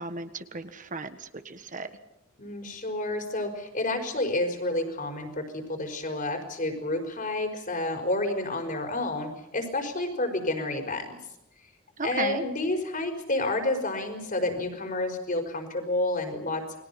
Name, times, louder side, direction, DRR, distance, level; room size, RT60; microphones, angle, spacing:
voice 1, 0.0-1.9 12.0-12.4, right 3 dB, 40° right, 9 dB, 1.6 m, -35 dB
voice 2, 2.4-11.2 12.0-16.6, left 2 dB, 40° left, 5 dB, 5.3 m, -30 dB
29.5 x 22.0 x 5.9 m, 0.83 s
head